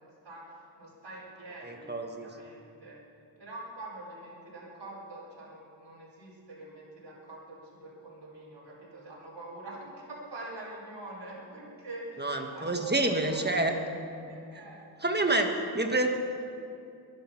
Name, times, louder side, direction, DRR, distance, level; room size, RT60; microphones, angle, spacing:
voice 1, 0.0-3.0 3.4-13.8 14.3-14.8, right 1 dB, 60° right, -6 dB, 5.1 m, -45 dB
voice 2, 1.6-2.3 12.2-13.8 15.0-16.1, right 2 dB, 20° right, 4 dB, 1.5 m, -28 dB
22.0 x 11.0 x 5.9 m, 2.5 s
wide cardioid pair, 105°, 46 cm